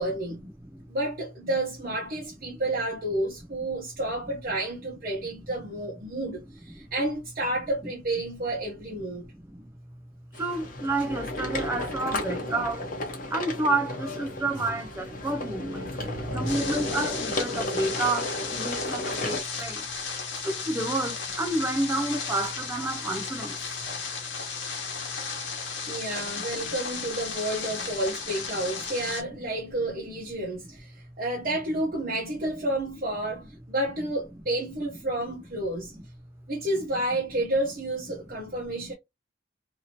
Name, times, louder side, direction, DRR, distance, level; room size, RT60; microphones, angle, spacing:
voice 1, 0.0-0.4 0.9-9.3 15.7-16.8 25.9-35.9 36.5-38.9, right 1 dB, 50° right, 0.8 m, -30 dB
sound 1, 10.3-19.4, left 2 dB, 50° left, 0.8 m, -33 dB
voice 2, 10.3-12.9 13.3-15.9 16.3-19.9 20.4-23.6 24.7-25.8 26.4-26.5 35.9-36.0, right 2 dB, 15° right, 0.3 m, -30 dB
sound 2, 16.5-29.2, left 5 dB, 90° left, 1.1 m, -35 dB
2.8 x 2.7 x 2.8 m
head